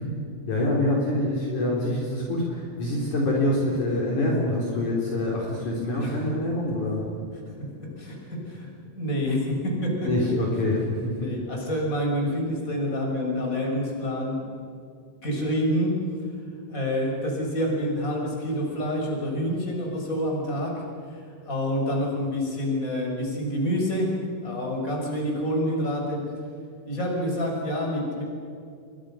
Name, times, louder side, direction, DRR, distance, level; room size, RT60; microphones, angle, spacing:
voice 1, 0.5-7.1 10.0-11.3, left 1 dB, 45° left, -3 dB, 5.0 m, -25 dB
voice 2, 7.6-10.3 11.2-14.4 15.2-16.2 16.7-24.1 24.4-26.2 26.9-28.2, equal, 20° left, 0 dB, 6.1 m, -28 dB
29.5 x 24.0 x 6.5 m, 2.4 s
omnidirectional pair, 4.9 m